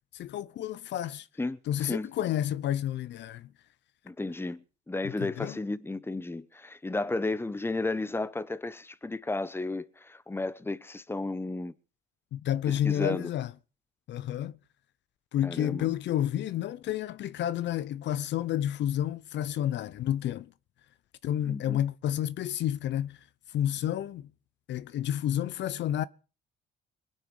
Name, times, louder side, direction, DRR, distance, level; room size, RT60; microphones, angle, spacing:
voice 1, 0.1-1.3 1.7-3.5 5.0-5.6 12.3-13.5 14.1-14.6 15.3-20.5 21.2-23.2 23.5-24.3 24.7-26.0, left 11 dB, 65° left, 0.7 m, -30 dB
voice 2, 1.4-2.1 4.0-11.7 12.7-13.3 15.4-15.9 21.4-21.8, left 2 dB, 10° left, 1.0 m, -33 dB
21.5 x 9.2 x 5.3 m
cardioid pair, 85°, 20 cm